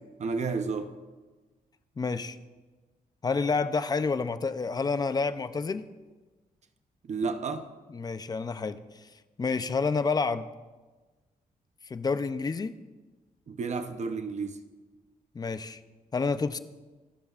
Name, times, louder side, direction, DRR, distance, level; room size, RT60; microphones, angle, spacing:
voice 1, 0.2-0.9 7.1-7.7 13.5-14.6, right 4 dB, 50° right, 7 dB, 0.8 m, -31 dB
voice 2, 2.0-2.4 3.2-5.8 7.9-8.8 9.4-10.5 11.9-12.7 15.3-15.8 16.1-16.6, left 4 dB, 25° left, 11 dB, 0.6 m, -29 dB
27.0 x 12.5 x 2.5 m, 1.3 s
wide cardioid pair, 135°, 15 cm